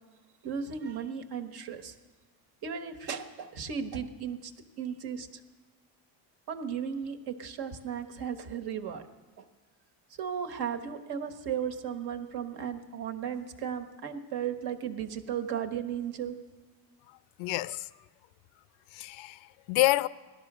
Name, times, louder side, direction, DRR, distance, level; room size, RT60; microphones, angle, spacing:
voice 1, 0.4-1.9 2.6-4.5 4.8-5.4 6.5-9.0 9.4-9.5 10.2-16.4, right 7 dB, 55° right, 1.3 m, -35 dB
voice 2, 17.4-17.9 18.9-20.1, left 17 dB, 80° left, 0.6 m, -28 dB
17.5 x 12.5 x 6.1 m
cardioid pair, 150°, 47 cm